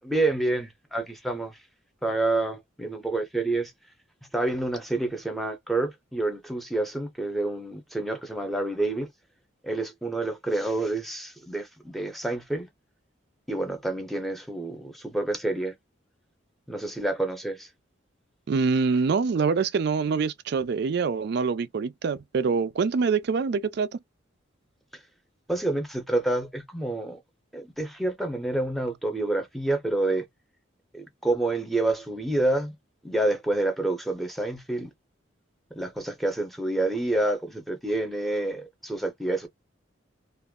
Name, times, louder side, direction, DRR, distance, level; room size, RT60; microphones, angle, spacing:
voice 1, 0.0-1.6 2.0-3.7 4.3-9.1 9.6-12.7 13.5-15.7 16.7-17.7 25.5-27.2 27.5-30.2 30.9-32.7 33.0-34.9 35.7-39.5, right 2 dB, ahead, 0.7 m, -28 dB
voice 2, 18.5-24.0, right 5 dB, 55° right, 0.3 m, -25 dB
2.4 x 2.0 x 3.6 m
head